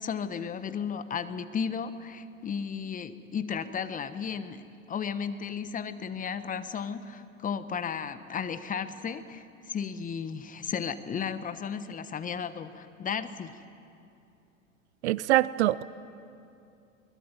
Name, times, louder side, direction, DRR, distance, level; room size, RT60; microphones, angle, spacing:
voice 1, 0.0-4.6 4.9-13.6, left 7 dB, 20° left, 12 dB, 1.2 m, -34 dB
voice 2, 15.0-15.8, right 15 dB, 55° right, 19 dB, 0.7 m, -24 dB
22.0 x 20.5 x 9.2 m, 2.6 s
figure-of-eight pair, 90°, 40 cm